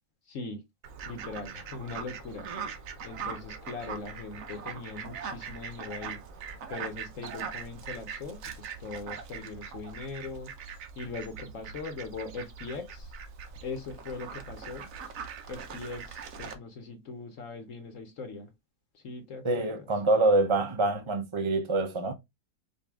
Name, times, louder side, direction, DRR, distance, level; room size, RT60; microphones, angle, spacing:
voice 1, 0.3-0.6 1.1-2.5 3.0-6.2 6.7-10.5 11.0-13.1 13.6-14.9 15.5-18.5 18.9-19.9, left 4 dB, 60° left, 1.1 m, -40 dB
Fowl, 0.8-16.5, right 6 dB, 60° right, 1.2 m, -41 dB
voice 2, 19.4-22.1, right 2 dB, 40° right, 0.4 m, -25 dB
5.3 x 2.6 x 3.3 m
omnidirectional pair, 1.7 m